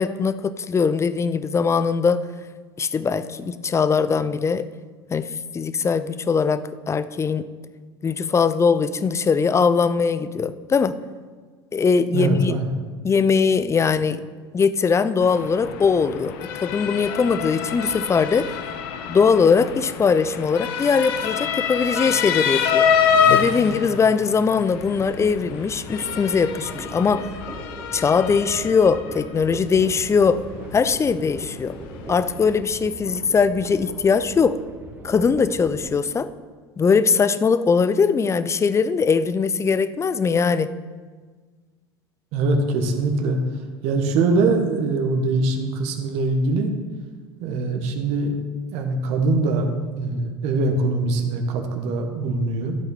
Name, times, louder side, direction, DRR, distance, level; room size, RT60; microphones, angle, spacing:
voice 1, 0.0-2.2 2.8-4.7 5.1-7.4 8.0-11.0 11.7-12.6 13.0-14.2 14.5-18.5 19.1-22.8 23.3-27.3 27.9-30.4 30.7-31.8 32.1-34.6 35.0-36.3 36.8-40.7, left 5 dB, 20° left, 14 dB, 0.6 m, -21 dB
voice 2, 12.1-12.7 42.3-43.4 43.8-46.7 47.4-48.3 48.7-49.7 50.0-52.8, right 3 dB, 55° right, 4 dB, 1.6 m, -22 dB
Motor vehicle (road) / Siren, 15.2-32.6, left 7 dB, 65° left, 1.0 m, -27 dB
sound 1, 24.6-35.9, right 1 dB, 20° right, 2.1 m, -39 dB
13.0 x 8.1 x 4.2 m, 1.5 s
hypercardioid pair, 75°, 13 cm